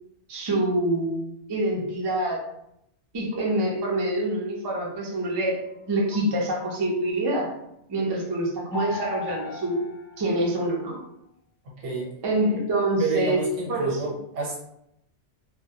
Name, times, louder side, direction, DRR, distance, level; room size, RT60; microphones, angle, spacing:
voice 1, 0.3-1.2 1.5-2.4 3.1-7.5 7.9-9.8 10.2-11.0 12.2-13.4 13.7-14.0, right 1 dB, 35° right, -3 dB, 0.4 m, -26 dB
sound 1, 5.2-7.5 8.7-11.0, left 3 dB, 60° left, 0.5 m, -39 dB
voice 2, 11.8-12.1 13.0-14.6, right 4 dB, 90° right, -3 dB, 1.1 m, -29 dB
2.2 x 2.1 x 2.7 m, 0.80 s
omnidirectional pair, 1.2 m